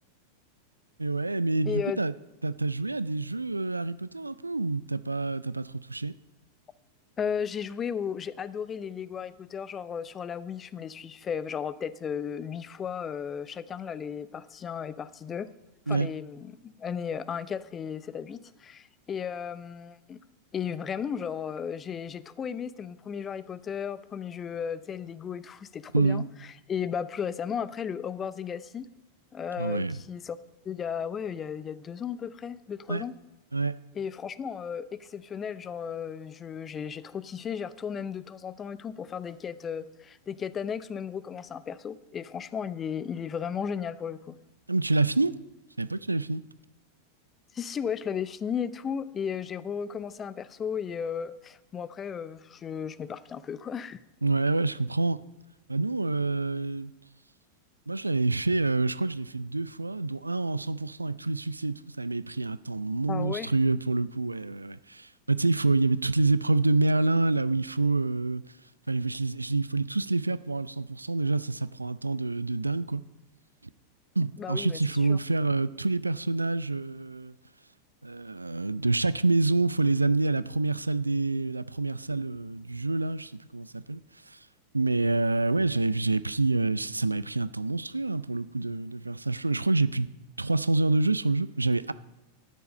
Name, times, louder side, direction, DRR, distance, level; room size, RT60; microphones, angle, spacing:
voice 1, 1.0-2.1 2.4-6.1 15.9-16.1 25.9-26.2 29.6-30.0 32.9-33.0 33.5-33.8 44.7-45.4 45.8-46.4 54.2-55.2 55.7-56.9 57.9-68.4 68.9-73.0 74.2-77.3 78.0-84.0 84.3-84.4 84.7-90.1 90.4-91.9, right 3 dB, 80° right, 0.4 m, -27 dB
voice 2, 1.7-2.0 7.2-15.5 15.9-20.2 20.5-26.2 26.7-28.9 29.3-33.1 33.9-44.4 47.5-54.0 63.1-63.5 74.4-74.8 75.1-75.2, left 7 dB, 25° left, 0.5 m, -35 dB
12.0 x 9.4 x 5.5 m
figure-of-eight pair, 90°, 0 cm